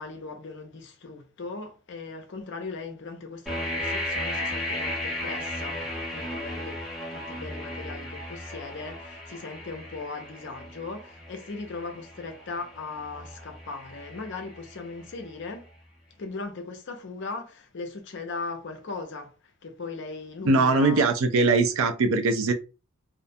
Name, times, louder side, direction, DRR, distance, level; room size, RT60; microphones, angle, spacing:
voice 1, 0.0-6.8 7.1-15.7 16.2-19.3 19.6-21.1, left 3 dB, 50° left, 0.5 m, -38 dB
sound 1, 3.5-15.3, left 1 dB, ahead, 0.7 m, -35 dB
voice 2, 20.5-22.5, right 3 dB, 65° right, 0.4 m, -21 dB
2.5 x 2.1 x 2.6 m
head